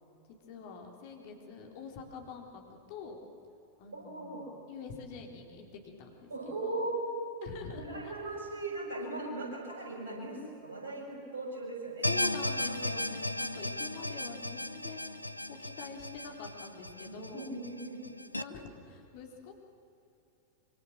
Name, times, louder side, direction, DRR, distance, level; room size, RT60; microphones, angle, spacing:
voice 1, 0.5-3.2 3.8-4.3 4.7-6.3 6.6-6.9 7.4-8.1 8.9-9.1 12.0-15.2 15.5-17.5 18.4-19.5, left 5 dB, 45° left, 2 dB, 3.8 m, -45 dB
voice 2, 3.9-4.5 6.3-7.4 7.7-11.1 11.3-12.1 12.4-12.6 12.8-13.0 17.0-18.1, right 2 dB, 70° right, -1 dB, 7.3 m, -38 dB
sound 1, 12.0-18.4, left 1 dB, 85° left, 0.7 m, -35 dB
25.0 x 25.0 x 7.5 m, 2.8 s
figure-of-eight pair, 90°, 0 cm